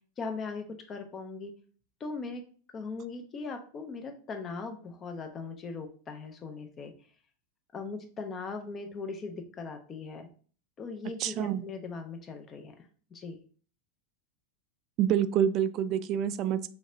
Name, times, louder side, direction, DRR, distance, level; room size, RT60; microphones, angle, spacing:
voice 1, 0.2-1.5 2.0-2.4 2.7-6.9 7.7-10.3 10.8-13.4, left 4 dB, 30° left, 5 dB, 0.8 m, -39 dB
voice 2, 11.2-11.6 15.0-16.7, right 9 dB, 40° right, 14 dB, 0.3 m, -27 dB
3.3 x 3.1 x 3.8 m, 0.43 s
figure-of-eight pair, 90°, 0 cm